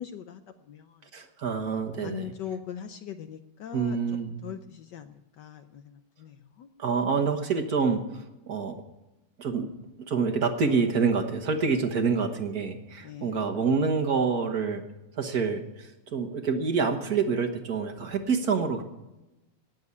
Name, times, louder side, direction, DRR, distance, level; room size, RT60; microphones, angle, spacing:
voice 1, 0.0-1.0 2.0-4.0 4.4-6.7 13.0-13.4, left 8 dB, 70° left, 9 dB, 1.1 m, -41 dB
voice 2, 1.1-2.3 3.7-4.3 6.8-8.8 9.4-9.7 10.1-14.8 15.1-18.8, right 5 dB, 50° right, 4 dB, 1.6 m, -27 dB
18.0 x 7.3 x 8.3 m, 1.0 s
omnidirectional pair, 2.3 m